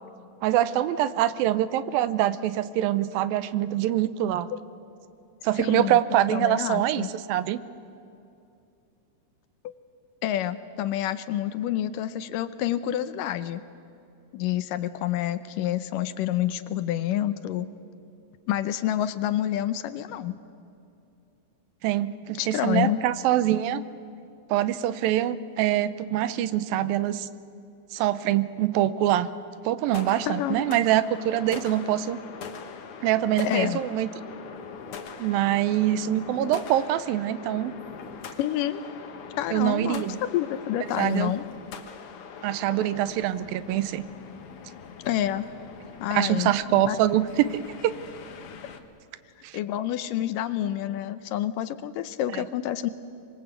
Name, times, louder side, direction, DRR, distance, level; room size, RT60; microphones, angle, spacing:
voice 1, 0.4-4.5 5.4-7.6 21.8-23.8 24.5-27.3 27.9-29.3 29.6-32.2 33.0-34.1 35.2-37.7 39.5-40.2 41.0-41.3 42.4-44.1 46.1-47.9 49.4-49.6 52.3-52.5, right 12 dB, 80° right, 15 dB, 2.5 m, -24 dB
voice 2, 5.6-6.0 6.3-7.1 10.2-13.6 14.3-17.7 18.5-20.4 22.4-23.0 30.3-30.7 33.4-33.8 38.4-38.8 39.4-41.4 45.1-45.5 46.0-47.0 49.5-52.9, left 12 dB, 75° left, 12 dB, 2.2 m, -28 dB
sound 1, 29.9-48.8, left 6 dB, 55° left, 1.7 m, -42 dB
25.5 x 22.0 x 8.1 m, 2.6 s
omnidirectional pair, 4.2 m